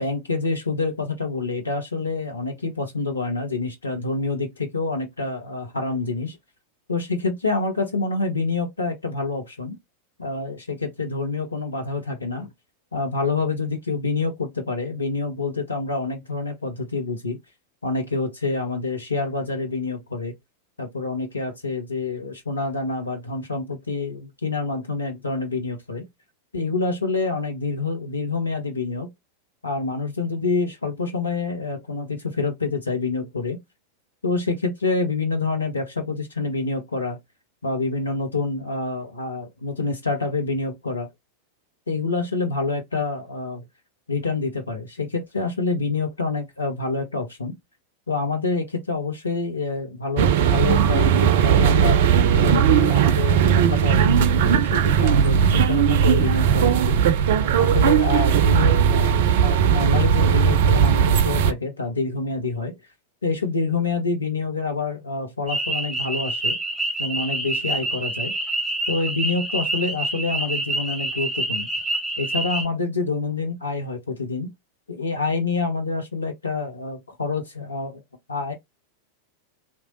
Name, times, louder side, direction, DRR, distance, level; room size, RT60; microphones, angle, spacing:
voice 1, 0.0-6.4 6.9-9.8 10.2-12.5 12.9-17.4 17.8-20.3 20.8-26.0 26.5-29.1 29.6-33.6 34.2-37.2 37.6-41.1 41.9-43.6 44.1-47.5 48.1-52.0 52.4-57.0 57.6-62.7 63.2-66.6 67.0-68.3 68.9-71.7 72.2-74.5 74.9-78.0 78.3-78.6, left 3 dB, 80° left, 0.7 m, -27 dB
sound 1, 50.2-61.5, right 8 dB, 55° right, 0.3 m, -18 dB
sound 2, 65.5-72.6, right 2 dB, 5° right, 1.0 m, -27 dB
2.9 x 2.1 x 2.9 m
figure-of-eight pair, 90°, 0 cm